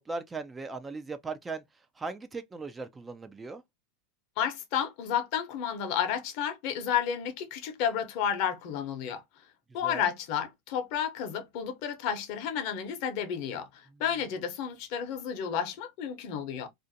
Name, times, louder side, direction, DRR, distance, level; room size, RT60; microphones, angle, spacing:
voice 1, 0.0-1.6 2.0-3.6 9.8-10.1 13.9-14.0, right 4 dB, 15° right, 0.3 m, -38 dB
voice 2, 4.4-9.2 9.7-16.7, left 8 dB, 55° left, 0.7 m, -31 dB
2.5 x 2.1 x 2.6 m
supercardioid pair, 125°, 0 cm